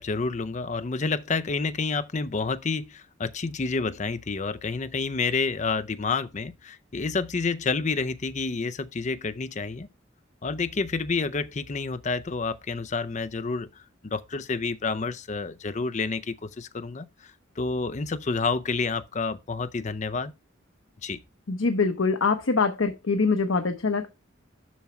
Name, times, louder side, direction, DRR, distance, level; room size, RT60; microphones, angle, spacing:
voice 1, 0.0-9.9 10.4-20.3 21.0-21.2, left 4 dB, 35° left, 0.5 m, -29 dB
voice 2, 21.5-24.1, left 4 dB, 80° left, 0.8 m, -24 dB
7.2 x 6.0 x 4.3 m
head